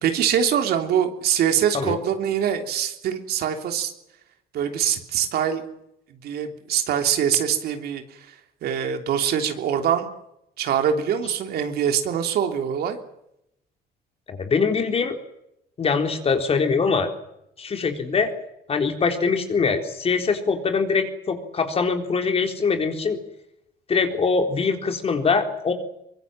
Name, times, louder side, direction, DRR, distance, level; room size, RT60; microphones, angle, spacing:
voice 1, 0.0-3.9 4.5-5.6 6.2-8.0 8.6-10.1 10.6-13.0, right 8 dB, 70° right, 6 dB, 3.3 m, -23 dB
voice 2, 14.3-15.2 15.8-17.1 17.6-18.3 18.7-23.2 23.9-25.7, left 5 dB, 35° left, 5 dB, 4.0 m, -23 dB
23.5 x 22.0 x 7.6 m, 0.82 s
cardioid pair, 110°, 17 cm